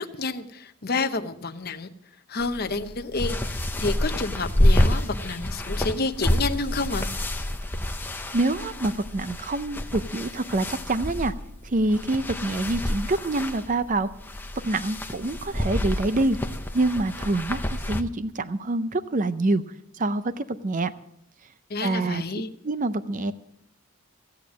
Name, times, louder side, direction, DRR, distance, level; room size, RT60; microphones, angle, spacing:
voice 1, 0.0-1.9 2.3-7.1 21.7-22.5, left 3 dB, 45° left, 8 dB, 0.9 m, -29 dB
sound 1, 2.4-18.0, left 1 dB, 10° left, 0.7 m, -28 dB
voice 2, 8.3-11.3 11.6-14.1 14.6-16.4 16.7-19.6 20.0-20.9 21.8-22.2 22.6-23.3, right 2 dB, 35° right, 13 dB, 0.6 m, -26 dB
15.5 x 8.8 x 7.4 m, 0.76 s
head